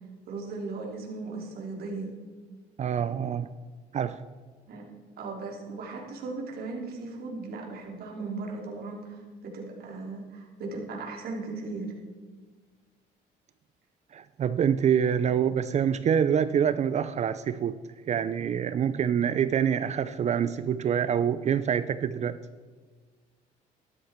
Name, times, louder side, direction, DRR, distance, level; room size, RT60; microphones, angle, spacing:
voice 1, 0.3-2.1 4.7-4.9 5.2-11.9, right 3 dB, 65° right, 0 dB, 3.4 m, -37 dB
voice 2, 2.8-3.5 3.9-4.2 14.1-17.8 18.1-22.4, right 8 dB, 40° right, 13 dB, 0.5 m, -26 dB
12.5 x 12.5 x 4.5 m, 1.5 s
cardioid pair, 110°, 17 cm